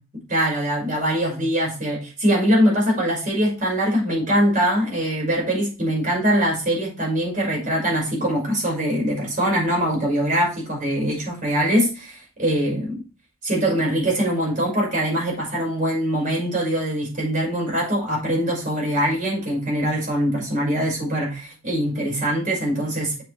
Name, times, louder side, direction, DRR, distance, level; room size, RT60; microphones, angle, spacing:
voice 1, 0.3-13.0 13.4-23.2, equal, 40° right, -1 dB, 6.1 m, -22 dB
8.8 x 8.1 x 3.5 m, 0.33 s
head